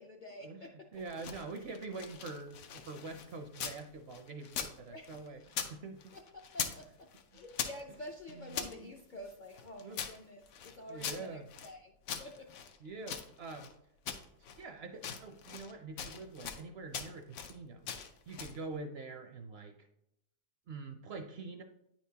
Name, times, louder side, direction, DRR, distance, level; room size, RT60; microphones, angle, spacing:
voice 1, 0.0-0.9 4.9-5.3 6.1-11.9 12.2-12.5, left 1 dB, 55° left, 1 dB, 0.5 m, -49 dB
voice 2, 0.9-6.1 8.5-8.9 9.8-10.0 10.9-11.4 12.8-13.7 14.6-17.9 18.3-19.9 20.7-21.6, right 3 dB, 65° right, 5 dB, 0.7 m, -45 dB
sound 1, 1.0-3.8 4.1-5.7 6.0-6.8 7.1-8.7 9.3-11.7 12.1-13.7 14.1-14.6 14.9-15.7 16.0-16.6 16.9-17.5 17.9-18.6, left 7 dB, 80° left, 1.1 m, -41 dB
9.4 x 4.4 x 2.7 m, 0.81 s
omnidirectional pair, 1.4 m